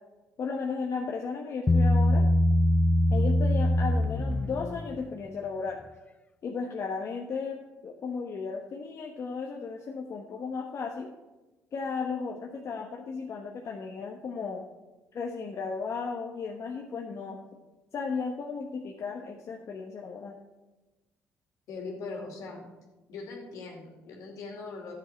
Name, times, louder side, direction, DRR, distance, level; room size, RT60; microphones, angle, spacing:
voice 1, 0.4-2.2 3.1-5.8 6.4-11.1 11.7-14.6 15.1-17.4 17.9-20.4, left 5 dB, 55° left, 1 dB, 1.1 m, -35 dB
Bass guitar, 1.7-5.1, left 1 dB, 25° left, 0.6 m, -23 dB
voice 2, 21.7-22.6 23.1-24.9, left 4 dB, 75° left, 0 dB, 2.7 m, -40 dB
12.0 x 7.5 x 4.4 m, 1.1 s
supercardioid pair, 70°, 6 cm